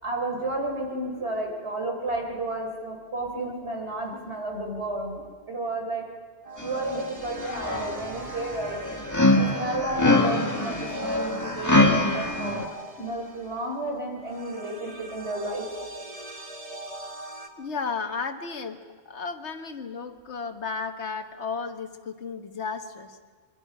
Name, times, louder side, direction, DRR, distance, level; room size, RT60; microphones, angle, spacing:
voice 1, 0.0-5.2 5.5-6.0 6.6-8.8 9.3-11.7 12.1-12.6 13.0-15.7, right 2 dB, 75° right, 1 dB, 4.2 m, -32 dB
sound 1, 6.4-17.5, right 1 dB, 35° right, 1.8 m, -42 dB
sound 2, 6.6-6.9 7.3-12.6, left 2 dB, 15° left, 1.7 m, -24 dB
voice 2, 17.6-18.8 19.0-23.2, left 5 dB, 85° left, 6 dB, 1.7 m, -33 dB
25.5 x 24.0 x 5.5 m, 1.5 s
omnidirectional pair, 1.1 m